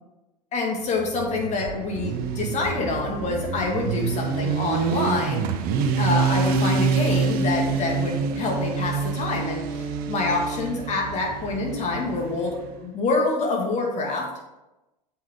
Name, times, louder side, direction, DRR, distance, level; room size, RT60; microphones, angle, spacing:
voice 1, 0.5-5.5 6.0-14.3, left 3 dB, 35° left, 0 dB, 2.3 m, -26 dB
Motorcycle, 1.0-12.7, right 5 dB, 45° right, 0.9 m, -26 dB
7.3 x 5.7 x 4.6 m, 0.98 s
hypercardioid pair, 100°, 21 cm